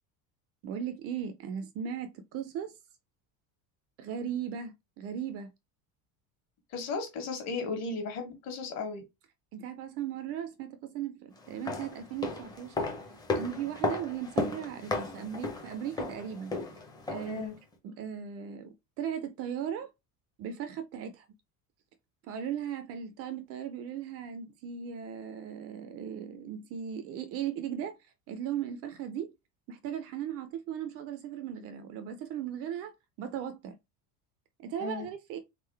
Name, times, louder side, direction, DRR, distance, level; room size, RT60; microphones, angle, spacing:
voice 1, 0.6-2.7 4.0-5.5 9.5-12.9 13.3-16.5 17.1-17.5 17.8-19.9 20.4-21.3 22.3-28.0 28.3-29.3 29.7-32.9 33.2-33.7 34.6-35.4, right 9 dB, 40° right, 0.5 m, -37 dB
voice 2, 6.7-9.0 17.3-17.5 34.8-35.1, left 4 dB, 45° left, 1.4 m, -35 dB
sound 1, 11.4-17.5 17.7-17.8, left 2 dB, 10° left, 0.7 m, -35 dB
3.7 x 3.7 x 3.3 m
cardioid pair, 180°, 37 cm